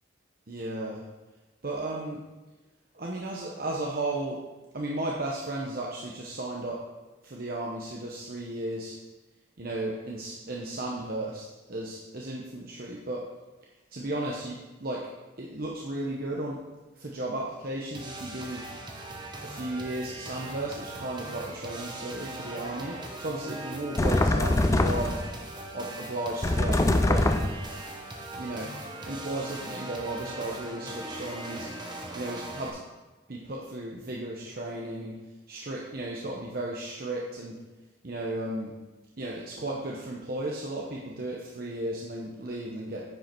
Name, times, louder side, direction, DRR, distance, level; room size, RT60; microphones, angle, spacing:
voice 1, 0.5-1.0 1.6-2.2 2.9-4.4 4.7-6.8 7.2-9.0 9.6-13.2 13.9-15.0 15.4-16.6 17.0-18.6 19.4-25.2 25.7-27.2 28.4-28.7 29.1-31.7 32.1-32.7 33.3-35.2 35.5-37.6 38.0-38.7 39.2-43.0, right 1 dB, 50° right, -2 dB, 0.9 m, -34 dB
sound 1, 17.9-32.7, right 2 dB, 25° right, 0.9 m, -40 dB
sound 2, 24.0-25.3 26.4-27.7, left 2 dB, 15° left, 0.3 m, -23 dB
9.5 x 5.5 x 4.5 m, 1.1 s
head